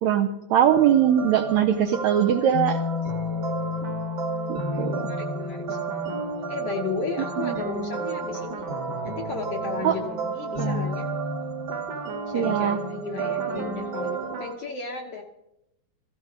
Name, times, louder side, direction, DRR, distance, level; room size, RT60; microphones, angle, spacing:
voice 1, 0.0-2.8 4.5-5.1 7.4-7.5 9.8-9.9 10.6-10.8 12.3-12.8, right 10 dB, 80° right, 5 dB, 1.7 m, -22 dB
sound 1, 0.7-14.5, right 4 dB, 45° right, 1.4 m, -31 dB
sound 2, 2.5-12.0, left 8 dB, 85° left, 2.4 m, -36 dB
voice 2, 4.7-5.8 6.5-8.7 9.0-11.1 12.3-15.2, left 5 dB, 65° left, 2 dB, 1.5 m, -34 dB
15.5 x 15.5 x 5.1 m, 0.88 s
omnidirectional pair, 4.0 m